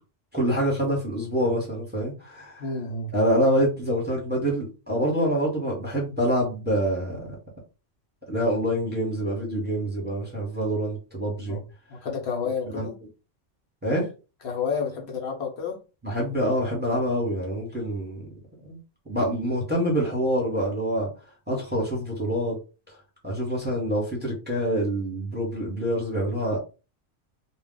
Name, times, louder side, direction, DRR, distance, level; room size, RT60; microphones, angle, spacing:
voice 1, 0.3-2.7 3.1-7.3 8.3-11.6 12.7-12.9 13.8-14.1 16.0-18.2 18.6-18.8 19.1-21.1 21.5-22.6 22.9-23.0 23.2-26.6, equal, 10° right, -2 dB, 0.9 m, -26 dB
voice 2, 2.6-3.2 11.5-11.6 11.9-13.0 14.4-15.8, left 5 dB, 65° left, 1 dB, 0.9 m, -30 dB
2.3 x 2.1 x 3.7 m, 0.32 s
omnidirectional pair, 1.2 m